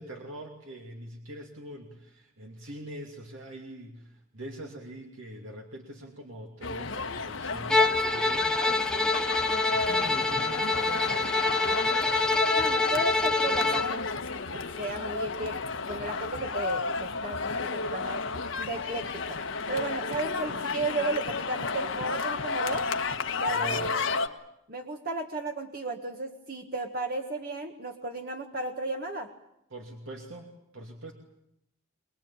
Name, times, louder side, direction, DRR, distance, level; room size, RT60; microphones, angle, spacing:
voice 1, 0.0-8.6 9.7-11.2 23.4-23.9 29.7-31.1, right 1 dB, 75° right, 1 dB, 2.7 m, -43 dB
sound 1, 6.6-24.3, left 4 dB, 65° left, 1.3 m, -32 dB
Bowed string instrument, 7.7-13.9, left 3 dB, 5° left, 1.0 m, -26 dB
voice 2, 12.5-14.0 14.5-15.5 15.8-18.2 18.6-19.4 19.7-22.9 23.4-24.0 24.7-29.3, right 2 dB, 50° right, 4 dB, 1.6 m, -34 dB
23.5 x 21.5 x 8.8 m, 0.79 s
head